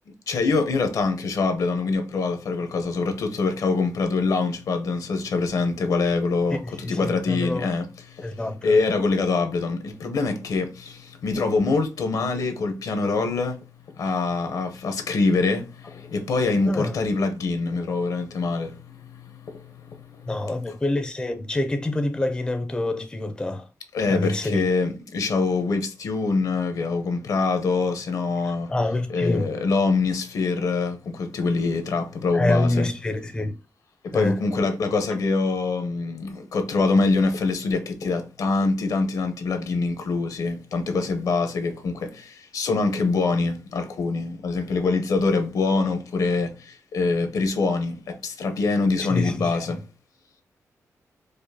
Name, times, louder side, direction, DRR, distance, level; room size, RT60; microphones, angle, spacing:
voice 1, 0.3-8.4 8.6-13.6 14.0-20.4 23.9-28.7 29.1-32.9 34.0-49.8, left 3 dB, 75° left, 0.8 m, -24 dB
voice 2, 6.5-7.7 8.2-8.8 16.7-17.0 20.3-23.7 24.1-24.6 28.7-29.5 32.3-33.6 34.1-34.4 49.1-49.7, left 2 dB, 15° left, 0.4 m, -26 dB
4.9 x 2.1 x 2.7 m
wide cardioid pair, 135°, 6 cm